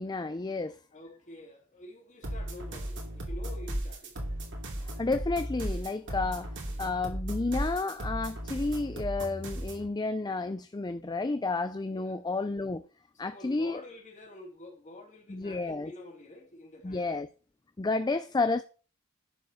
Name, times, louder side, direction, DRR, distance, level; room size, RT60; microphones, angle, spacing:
voice 1, 0.0-0.8 5.0-6.5 6.8-12.8 13.2-13.8 15.3-15.9 16.8-17.3 17.8-18.6, left 3 dB, 20° left, 0.4 m, -31 dB
voice 2, 0.9-4.2 11.9-12.2 13.1-17.1, left 1 dB, 35° left, 2.5 m, -48 dB
sound 1, 2.2-9.9, right 1 dB, 60° right, 2.7 m, -36 dB
10.5 x 4.7 x 6.4 m
head